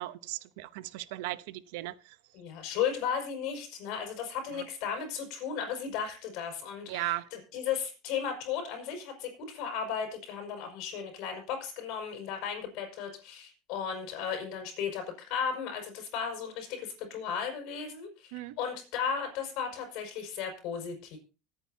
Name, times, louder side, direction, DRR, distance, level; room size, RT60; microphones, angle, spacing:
voice 1, 0.0-2.2 4.5-4.6 6.9-7.3 18.3-18.6, right 18 dB, 75° right, 0.8 m, -37 dB
voice 2, 2.3-21.2, left 7 dB, 60° left, 5.8 m, -35 dB
25.0 x 9.0 x 2.8 m
supercardioid pair, 135°, 0 cm